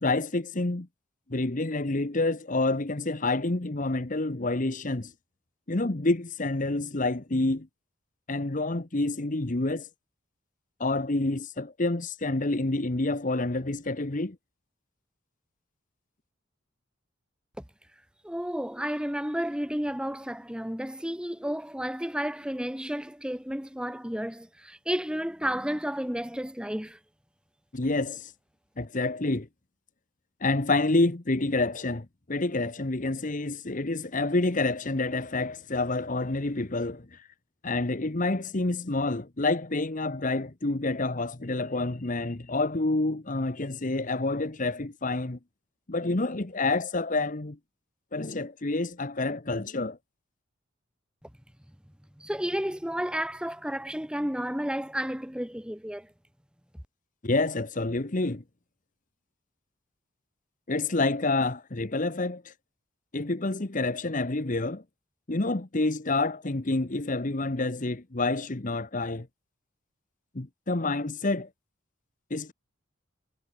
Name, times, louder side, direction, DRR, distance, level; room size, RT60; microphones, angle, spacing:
voice 1, 0.0-0.9 1.3-5.1 5.7-7.7 8.3-9.9 10.8-14.4 27.7-28.3 28.8-29.5 30.4-37.2 37.6-45.4 45.9-47.6 48.1-50.0 57.2-58.4 60.7-62.5 63.1-64.8 65.3-69.3 70.3-71.5 72.3-72.5, left 2 dB, 40° left, 1.1 m, -28 dB
voice 2, 18.2-27.0 52.2-56.1, equal, 5° right, 1.5 m, -32 dB
head